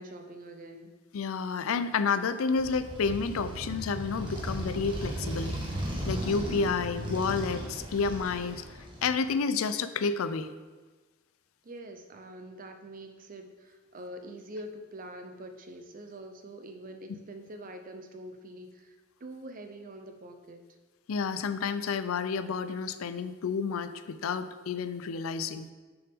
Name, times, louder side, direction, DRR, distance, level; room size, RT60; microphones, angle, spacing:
voice 1, 0.0-1.0 11.6-19.0 19.2-20.7, right 1 dB, 45° right, 7 dB, 0.6 m, -45 dB
voice 2, 1.1-5.5 6.1-8.6 9.0-10.5 21.1-25.7, left 5 dB, 90° left, 12 dB, 0.4 m, -30 dB
Motorcycle, 2.5-9.2, right 1 dB, 25° right, 1.4 m, -36 dB
6.2 x 5.9 x 3.5 m, 1.3 s
head